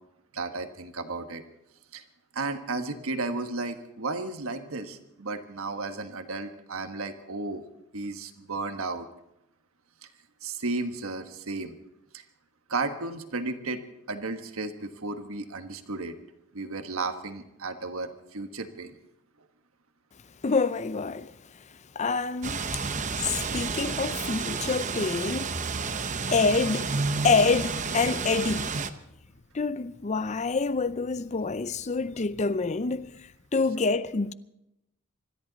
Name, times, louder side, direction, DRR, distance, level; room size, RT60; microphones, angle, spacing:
voice 1, 0.3-1.4 1.9-2.0 2.3-7.6 7.9-9.1 10.0-10.1 10.4-11.7 12.1-12.2 12.7-13.8 14.1-16.1 16.5-18.9, right 3 dB, 70° right, 1.4 m, -33 dB
voice 2, 20.4-21.6 22.0-25.9 26.3-27.0 27.2-28.8 29.5-34.3, left 4 dB, 30° left, 0.5 m, -27 dB
sound 1, 22.4-28.9, right 4 dB, 35° right, 0.8 m, -31 dB
25.5 x 13.5 x 4.0 m
head